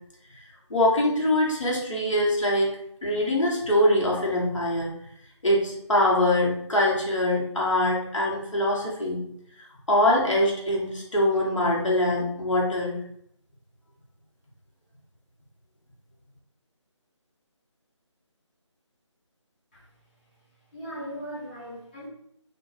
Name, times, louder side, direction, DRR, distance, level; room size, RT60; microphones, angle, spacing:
voice 1, 0.7-2.7 3.0-4.9 5.4-9.2 9.9-13.0, left 1 dB, 80° left, -3 dB, 1.0 m, -23 dB
voice 2, 20.7-22.1, equal, 20° left, -10 dB, 0.6 m, -38 dB
2.6 x 2.2 x 2.6 m, 0.70 s
figure-of-eight pair, 170°, 16 cm